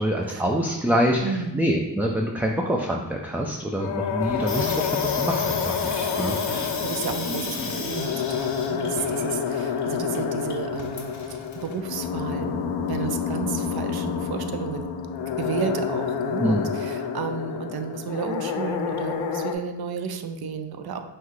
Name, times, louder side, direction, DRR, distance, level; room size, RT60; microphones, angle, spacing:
voice 1, 0.0-6.8 16.4-16.7, equal, 5° right, 0 dB, 0.3 m, -26 dB
voice 2, 1.2-1.6 6.1-14.9 15.4-21.0, right 6 dB, 60° right, 7 dB, 0.5 m, -32 dB
sound 1, 3.8-19.6, left 7 dB, 75° left, 0.5 m, -29 dB
Water tap faucet / Sink (filling or washing), 4.2-11.8, left 3 dB, 40° left, 0.7 m, -33 dB
5.8 x 2.2 x 3.1 m, 1.0 s
supercardioid pair, 45°, 44 cm